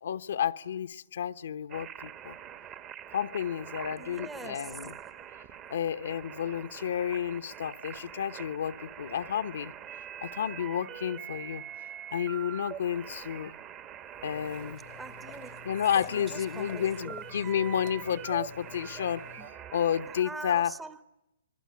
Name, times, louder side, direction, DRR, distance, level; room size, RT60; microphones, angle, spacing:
voice 1, 0.0-2.4 3.1-4.9 5.7-9.7 10.2-11.6 12.1-13.5 14.2-14.8 15.6-19.3 19.7-20.7, left 9 dB, 70° left, 0.9 m, -31 dB
sound 1, 1.7-20.2, right 9 dB, 30° right, 1.2 m, -44 dB
voice 2, 4.0-4.9 15.0-15.7 16.1-17.3 19.4-19.5 20.0-21.0, right 3 dB, 10° right, 0.9 m, -44 dB
sound 2, 14.3-19.5, left 16 dB, 45° left, 0.9 m, -49 dB
26.0 x 22.5 x 9.6 m
hypercardioid pair, 135°, 0 cm